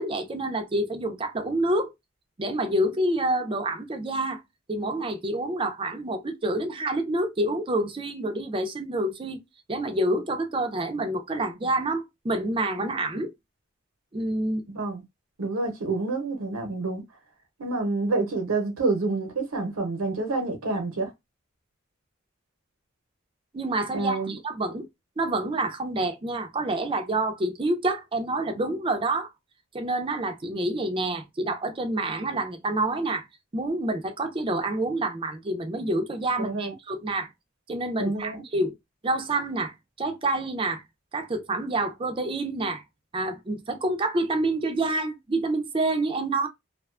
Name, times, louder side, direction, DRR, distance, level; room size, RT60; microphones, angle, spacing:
voice 1, 0.0-1.9 2.4-4.4 4.7-9.4 9.7-13.3 14.1-14.6 23.5-24.9 25.2-29.3 29.7-33.3 33.5-37.3 37.7-38.7 39.0-40.8 41.1-42.8 43.1-46.5, right 2 dB, 25° right, 0.4 m, -27 dB
voice 2, 14.7-15.0 15.4-17.0 17.6-21.1 23.9-24.4 36.4-36.7 38.0-38.4, right 3 dB, 90° right, 0.7 m, -28 dB
2.4 x 2.2 x 2.4 m
head